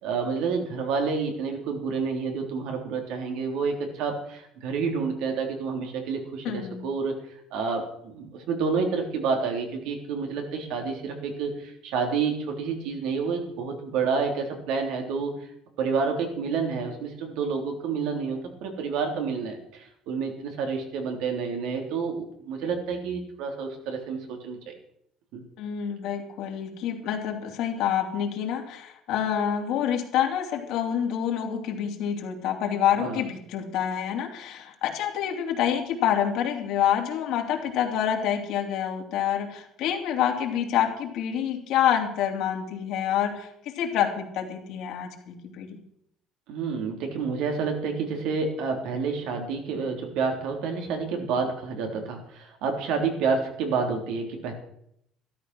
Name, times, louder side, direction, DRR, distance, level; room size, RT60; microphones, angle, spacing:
voice 1, 0.0-7.2 7.5-15.3 15.8-24.7 25.3-25.4 33.0-33.2 46.5-54.5, right 5 dB, 80° right, 3 dB, 3.5 m, -29 dB
voice 2, 6.4-6.9 25.6-45.8, left 9 dB, 70° left, 2 dB, 2.9 m, -27 dB
13.0 x 13.0 x 6.2 m, 0.72 s
cardioid pair, 140°, 0 cm